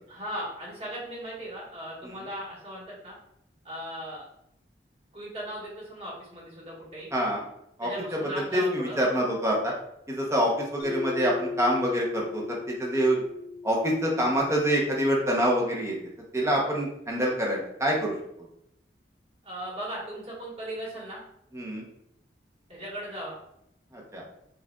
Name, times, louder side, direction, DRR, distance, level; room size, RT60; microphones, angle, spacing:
voice 1, 0.1-3.2 3.6-4.3 5.1-7.1 7.8-9.0 19.4-21.2 22.7-23.4, equal, 35° right, -6 dB, 1.4 m, -37 dB
voice 2, 7.1-7.4 7.8-7.9 8.5-9.7 10.1-13.2 13.6-16.0 16.3-18.1 21.5-21.8 23.9-24.2, equal, 15° right, -2 dB, 0.8 m, -26 dB
Mallet percussion, 10.8-15.4, left 4 dB, 80° left, 1.3 m, -38 dB
4.8 x 2.5 x 2.3 m, 0.75 s
head